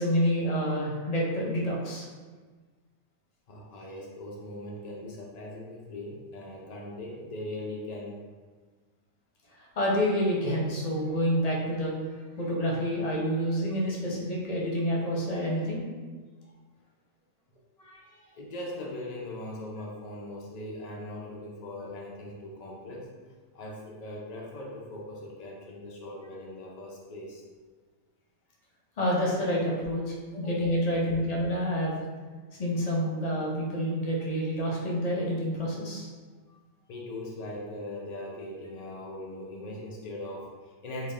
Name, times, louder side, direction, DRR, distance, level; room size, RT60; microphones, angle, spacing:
voice 1, 0.0-2.1 9.5-12.0 12.4-15.8 17.8-18.2 29.0-32.0 32.6-36.1, equal, 40° left, -4 dB, 0.6 m, -28 dB
voice 2, 3.5-8.3 18.3-23.1 23.5-27.4 30.3-30.5 36.9-41.1, left 1 dB, 85° left, -3 dB, 0.3 m, -40 dB
3.5 x 2.3 x 3.4 m, 1.4 s
omnidirectional pair, 1.3 m